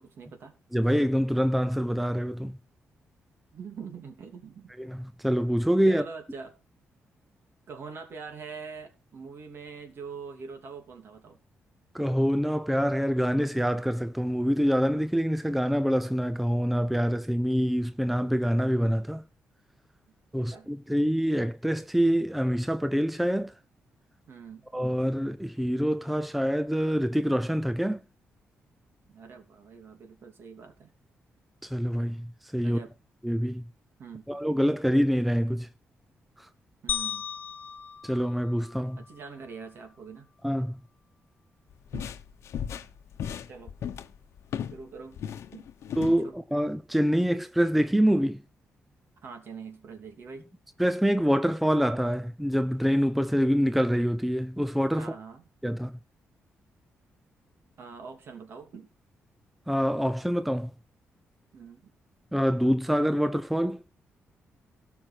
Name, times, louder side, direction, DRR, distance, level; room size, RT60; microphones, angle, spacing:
voice 1, 0.0-0.5 3.5-4.7 5.8-6.5 7.7-11.4 20.3-20.7 24.3-24.6 29.1-30.9 32.6-32.9 34.0-34.2 36.8-37.3 39.0-40.3 41.9-42.1 43.5-43.7 44.7-45.2 45.5-45.7 46.1-46.4 49.2-50.5 54.9-55.4 57.8-58.9 61.5-61.9, right 5 dB, 55° right, 3.0 m, -43 dB
voice 2, 0.7-2.6 4.8-6.0 11.9-19.2 20.3-23.5 24.7-28.0 31.6-32.8 33.2-33.6 34.3-35.7 36.4-36.5 38.0-39.0 40.4-40.8 46.0-48.4 50.8-55.1 55.6-55.9 59.7-60.7 62.3-63.8, equal, ahead, 0.5 m, -26 dB
sound 1, 36.9-39.2, left 9 dB, 45° left, 1.2 m, -36 dB
sound 2, 41.7-44.8 45.1-46.2, left 8 dB, 75° left, 1.0 m, -36 dB
17.5 x 6.0 x 4.5 m
cardioid pair, 140°, 5 cm